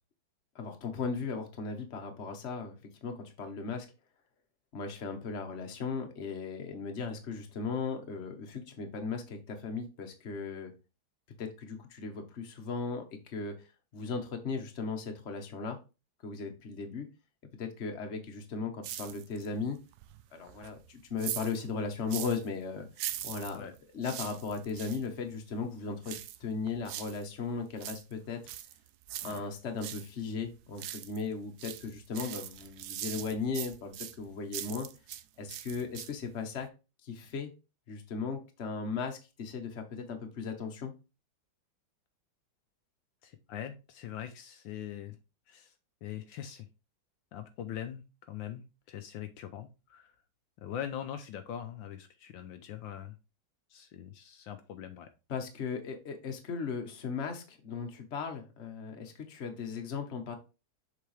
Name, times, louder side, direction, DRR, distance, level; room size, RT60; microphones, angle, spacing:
voice 1, 0.5-2.7 3.0-3.9 4.7-10.7 11.4-15.8 16.2-17.1 17.6-19.8 20.3-22.9 23.2-28.5 29.2-34.9 35.4-36.7 37.0-37.5 37.9-40.9 55.3-60.3, left 5 dB, 40° left, 4 dB, 1.3 m, -37 dB
sound 1, 18.8-19.6 19.9-22.5 22.9-25.0 26.0-27.3 27.6-30.1 30.4-31.3 31.6-35.2 35.5-36.3 36.6-36.7, right 12 dB, 75° right, 0.9 m, -41 dB
voice 2, 43.2-45.2 45.5-45.7 46.0-46.7 47.3-50.1 50.6-53.2 53.7-55.1, left 10 dB, 75° left, 7 dB, 1.4 m, -42 dB
6.8 x 4.6 x 3.3 m, 0.29 s
omnidirectional pair, 2.2 m